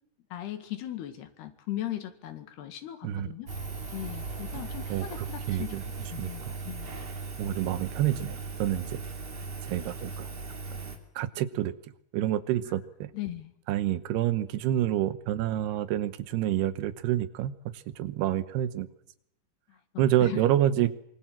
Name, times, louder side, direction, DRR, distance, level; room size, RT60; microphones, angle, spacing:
voice 1, 0.3-3.5 3.9-5.8 6.1-6.9 12.7-12.8 13.1-13.5 19.7-20.4, left 13 dB, 90° left, 8 dB, 4.1 m, -38 dB
Engine, 3.5-11.0, right 3 dB, 40° right, 3.8 m, -38 dB
voice 2, 4.9-5.8 6.2-6.3 7.4-9.0 9.6-10.3 11.2-11.7 12.1-13.1 13.7-17.5 18.0-18.9 20.0-20.9, right 12 dB, 85° right, 13 dB, 3.1 m, -28 dB
25.5 x 24.5 x 7.5 m, 0.78 s
omnidirectional pair, 4.6 m